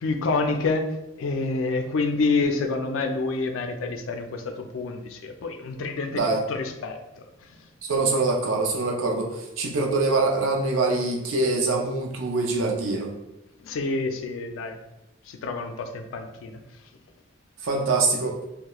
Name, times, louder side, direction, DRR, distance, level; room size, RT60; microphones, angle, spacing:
voice 1, 0.0-0.9 1.2-7.6 13.6-14.8 15.3-16.6, left 3 dB, 80° left, 6 dB, 0.3 m, -28 dB
voice 2, 7.8-13.1 17.6-18.4, right 3 dB, 80° right, 1 dB, 0.5 m, -24 dB
2.3 x 2.0 x 2.9 m, 0.92 s
head